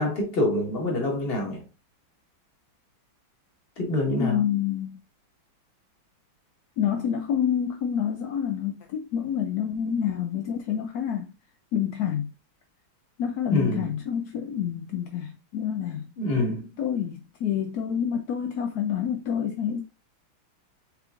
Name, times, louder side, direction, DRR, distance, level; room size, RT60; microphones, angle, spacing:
voice 1, 0.0-1.6 3.8-4.4 13.5-13.9 16.2-16.7, left 2 dB, 30° left, 1.5 m, -26 dB
voice 2, 4.2-5.0 6.8-11.3 11.7-12.3 13.2-16.1 16.8-19.8, left 9 dB, 75° left, 0.9 m, -28 dB
6.6 x 3.1 x 2.4 m
omnidirectional pair, 2.1 m